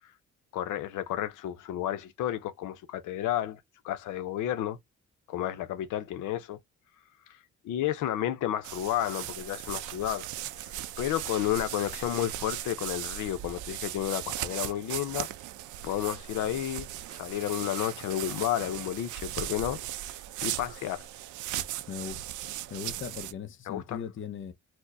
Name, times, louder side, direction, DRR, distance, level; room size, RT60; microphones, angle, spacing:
voice 1, 0.5-4.8 5.3-6.6 7.3-7.4 7.6-10.3 10.6-15.3 15.8-19.8 20.4-21.1 23.7-24.0, left 12 dB, 80° left, 0.6 m, -32 dB
sound 1, 8.6-23.3, right 13 dB, 75° right, 0.5 m, -38 dB
voice 2, 21.9-22.2 22.7-24.5, left 7 dB, 40° left, 0.6 m, -38 dB
4.3 x 2.1 x 2.5 m
cardioid pair, 90°, 30 cm